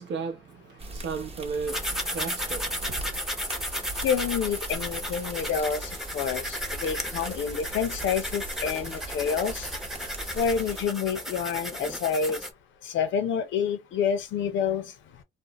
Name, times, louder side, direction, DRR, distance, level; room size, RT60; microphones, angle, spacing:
voice 1, 0.0-3.2, right 5 dB, 65° right, 0.7 m, -35 dB
sound 1, 0.8-10.9, right 2 dB, 30° right, 0.9 m, -40 dB
sound 2, 1.7-12.5, equal, ahead, 0.6 m, -34 dB
voice 2, 4.0-9.7 10.3-12.4 12.8-14.9, left 7 dB, 75° left, 0.6 m, -28 dB
2.5 x 2.1 x 2.8 m
cardioid pair, 90°, 20 cm